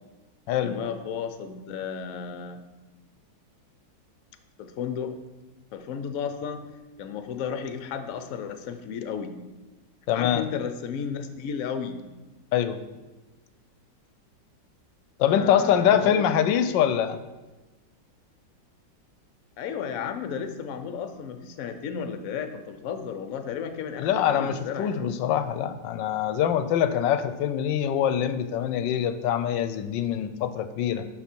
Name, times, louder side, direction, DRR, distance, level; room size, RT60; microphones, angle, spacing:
voice 1, 0.6-2.6 4.6-5.1 5.7-6.6 7.0-9.4 10.1-12.0 15.2-16.3 19.6-25.2, left 7 dB, 60° left, 8 dB, 1.0 m, -33 dB
voice 2, 10.1-10.5 12.5-12.8 15.2-17.2 24.0-31.1, left 9 dB, 90° left, 10 dB, 1.3 m, -24 dB
11.0 x 4.2 x 4.5 m, 1.2 s
omnidirectional pair, 2.0 m